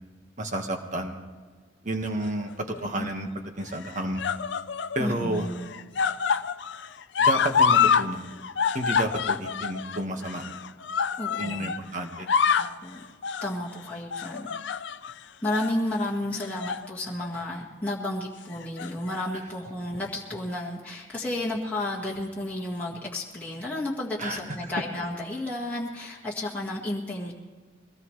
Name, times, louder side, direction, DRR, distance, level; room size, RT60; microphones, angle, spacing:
voice 1, 0.4-1.2 1.8-3.3 3.6-4.2 4.9-5.5 7.2-8.3 8.7-10.4 11.4-12.3 24.2-24.7, right 1 dB, 40° right, 4 dB, 1.6 m, -31 dB
sound 1, 2.2-2.8 3.7-5.0 5.3-8.1 8.3-11.8 12.1-12.8 13.2-13.5 14.1-15.1 15.5-15.7 16.4-16.9 17.2-17.4 18.5-19.2 20.1-20.2, left 6 dB, 60° left, 0.5 m, -26 dB
voice 2, 2.7-3.1 5.0-5.7 11.2-11.8 12.5-13.0 13.4-14.5 15.4-27.3, left 1 dB, 5° left, -5 dB, 1.7 m, -32 dB
23.0 x 18.0 x 3.3 m, 1.5 s
head